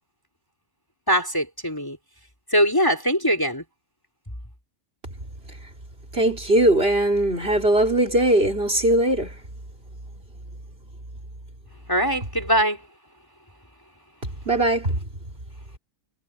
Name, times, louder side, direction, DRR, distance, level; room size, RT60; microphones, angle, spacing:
voice 1, 1.1-2.0 2.5-3.6 11.9-12.9, equal, 15° left, 3.6 m, -22 dB
voice 2, 6.1-9.4 14.5-15.0, right 1 dB, 40° right, 4.3 m, -20 dB
omnidirectional pair, 1.6 m